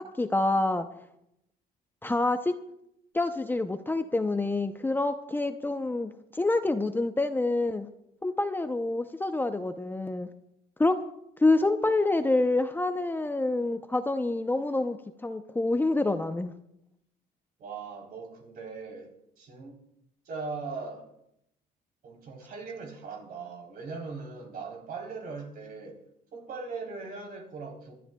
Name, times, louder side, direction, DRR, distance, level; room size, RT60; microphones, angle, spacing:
voice 1, 0.2-0.9 2.0-2.5 3.1-7.9 8.2-10.3 10.8-11.0 11.4-15.0 15.2-16.5, left 2 dB, 10° left, 8 dB, 0.6 m, -27 dB
voice 2, 17.6-19.1 19.4-19.8 20.3-21.1 22.0-26.0 26.3-27.9, right 4 dB, 60° right, 1 dB, 3.5 m, -39 dB
28.0 x 12.5 x 2.3 m, 0.80 s
cardioid pair, 110°, 17 cm